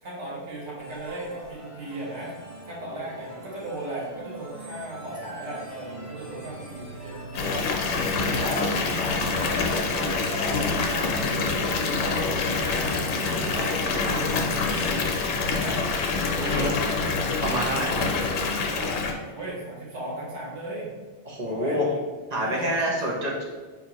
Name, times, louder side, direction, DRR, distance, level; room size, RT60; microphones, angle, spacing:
voice 1, 0.0-2.3 2.6-7.7 8.2-14.9 15.5-15.9 16.9-17.2 17.7-18.3 18.7-20.9 21.4-21.8 22.3-22.9, right 1 dB, 80° right, -5 dB, 1.4 m, -37 dB
sound 1, 0.8-19.0, right 1 dB, 15° left, 0.9 m, -43 dB
Water tap faucet / Bathtub (filling or washing) / Fill (with liquid), 7.3-19.1, left 4 dB, 90° left, 0.9 m, -26 dB
voice 2, 16.4-16.8 17.4-17.9 21.2-21.9 22.3-23.4, equal, 40° right, -3 dB, 0.8 m, -27 dB
4.4 x 2.8 x 2.9 m, 1.4 s
omnidirectional pair, 1.2 m